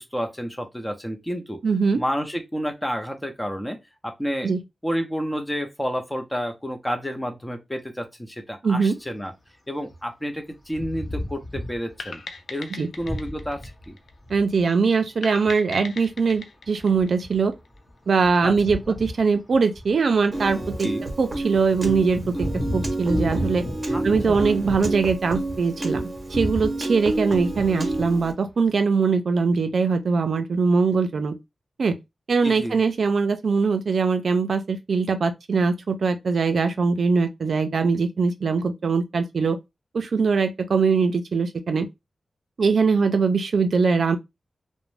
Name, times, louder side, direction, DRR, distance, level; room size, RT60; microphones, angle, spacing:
voice 1, 0.0-1.6 2.0-3.8 4.0-4.5 4.8-9.3 9.7-12.2 12.5-14.0 18.4-18.5 18.9-19.0 20.8-21.1 23.9-24.5 32.4-32.8, equal, 10° left, 0.6 m, -30 dB
voice 2, 1.6-2.0 4.4-4.6 8.6-9.0 12.8-12.9 14.3-17.5 18.1-20.9 21.2-22.5 22.7-23.7 24.0-31.4 31.8-32.0 32.3-39.6 39.9-41.9 42.6-44.2, right 4 dB, 70° right, 0.4 m, -22 dB
sound 1, 10.7-12.0 13.0-14.6 15.3-15.5 15.9-25.6 25.9-26.8 27.3-28.1, left 1 dB, 40° left, 1.0 m, -34 dB
sound 2, 12.0-14.5 15.2-17.8, left 4 dB, 75° left, 0.4 m, -39 dB
Piano, 20.3-28.3, right 2 dB, 35° right, 0.8 m, -29 dB
2.5 x 2.0 x 3.1 m
wide cardioid pair, 90°, 0 cm